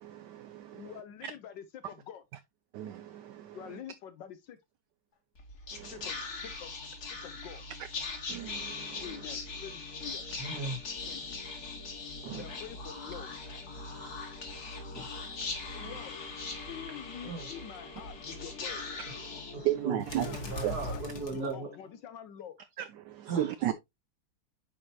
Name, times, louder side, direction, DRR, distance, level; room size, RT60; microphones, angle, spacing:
voice 1, 0.0-1.3 2.7-3.6 5.7-6.1 8.3-9.2 12.2-12.4 15.8-15.9 19.6-20.4 20.6-20.8 22.8-23.7, right 13 dB, 75° right, 1.0 m, -35 dB
voice 2, 0.7-2.2 3.5-4.6 5.9-6.7 7.2-7.6 9.0-10.2 11.1-11.4 12.3-13.3 15.7-16.2 16.6-18.8 20.1-22.6, left 9 dB, 70° left, 1.2 m, -46 dB
Whispering, 5.3-21.9, left 3 dB, 50° left, 1.8 m, -40 dB
voice 3, 10.4-10.8 12.2-12.4 13.7-14.2 15.0-15.1 17.2-17.5 19.5-21.7 23.3-23.7, right 3 dB, 50° right, 2.0 m, -38 dB
8.8 x 4.9 x 2.7 m
omnidirectional pair, 2.3 m